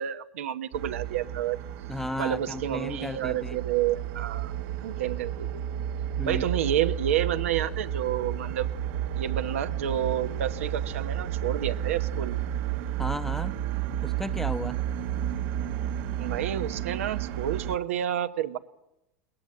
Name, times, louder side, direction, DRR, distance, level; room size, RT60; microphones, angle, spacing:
voice 1, 0.0-1.6 2.2-4.5 4.8-5.6 6.2-8.7 9.1-12.4 16.2-18.6, right 10 dB, 85° right, 9 dB, 1.1 m, -29 dB
sound 1, 0.7-17.8, right 11 dB, 55° right, 1.0 m, -32 dB
voice 2, 1.9-3.6 6.2-6.4 13.0-13.6 14.0-14.8, left 1 dB, 5° left, 12 dB, 0.9 m, -34 dB
21.5 x 18.0 x 7.8 m, 0.92 s
supercardioid pair, 115°, 7 cm